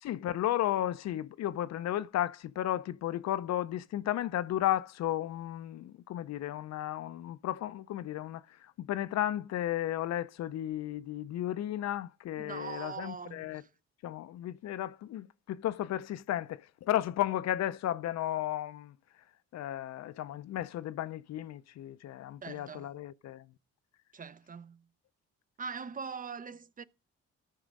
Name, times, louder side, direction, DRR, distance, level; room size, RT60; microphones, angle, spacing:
voice 1, 0.0-13.6 14.0-18.9 19.5-23.5, left 12 dB, 60° left, 0.5 m, -34 dB
voice 2, 12.4-13.7 22.4-22.9 24.1-24.8 25.6-26.8, right 5 dB, 30° right, 0.4 m, -42 dB
13.0 x 4.9 x 5.2 m
cardioid pair, 90°, 30 cm